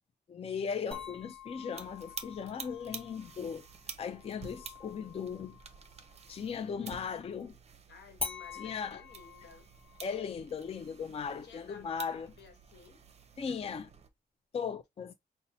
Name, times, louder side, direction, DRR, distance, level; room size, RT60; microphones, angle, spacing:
voice 1, 0.3-3.7 4.0-5.6 6.3-7.6 8.5-9.0 10.0-12.3 13.4-13.9 14.5-15.1, left 6 dB, 35° left, 0.4 m, -38 dB
sound 1, 0.9-6.5 8.2-13.2, left 4 dB, 5° left, 2.6 m, -47 dB
sound 2, 1.7-14.1, right 6 dB, 40° right, 0.6 m, -50 dB
voice 2, 7.9-9.7 11.4-13.0, left 6 dB, 80° left, 1.1 m, -55 dB
5.3 x 2.1 x 2.7 m
cardioid pair, 120°, 17 cm